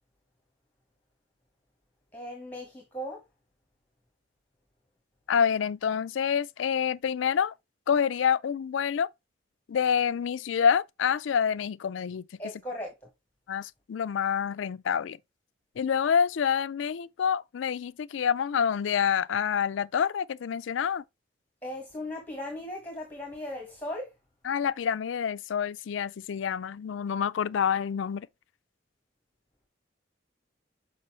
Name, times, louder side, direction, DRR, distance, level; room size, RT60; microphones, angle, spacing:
voice 1, 2.1-3.2 12.4-12.9 21.6-24.1, left 1 dB, 10° left, 1.4 m, -37 dB
voice 2, 5.3-7.5 7.9-9.1 9.7-12.3 13.5-15.2 15.8-21.0 24.4-28.3, left 7 dB, 75° left, 0.4 m, -27 dB
6.7 x 4.9 x 3.1 m
head